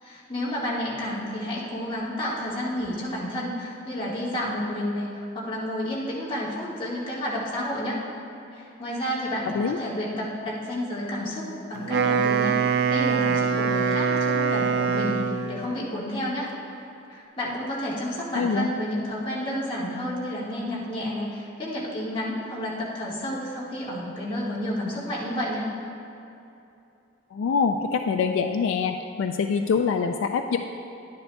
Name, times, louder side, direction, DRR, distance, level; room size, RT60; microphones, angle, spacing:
voice 1, 0.0-8.0 8.5-16.5 17.1-25.7, equal, 25° left, -8 dB, 1.7 m, -30 dB
Wind instrument woodwind instrument, 11.8-15.6, right 5 dB, 55° right, 0.4 m, -23 dB
voice 2, 18.4-18.7 27.3-30.6, left 5 dB, 75° left, 6 dB, 0.3 m, -24 dB
11.5 x 9.5 x 2.3 m, 2.8 s
head